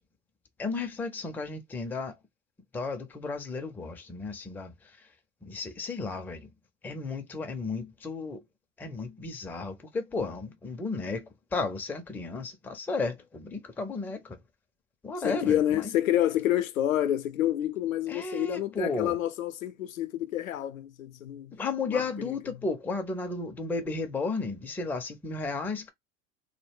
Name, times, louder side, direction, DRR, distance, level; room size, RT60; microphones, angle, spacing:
voice 1, 0.6-2.1 2.7-4.7 5.4-6.5 6.8-8.4 8.8-14.4 15.0-15.9 18.1-19.2 21.5-25.9, left 3 dB, 5° left, 0.4 m, -34 dB
voice 2, 15.2-21.5 21.9-22.3, left 12 dB, 85° left, 0.5 m, -28 dB
2.1 x 2.0 x 3.3 m
hypercardioid pair, 80°, 40 cm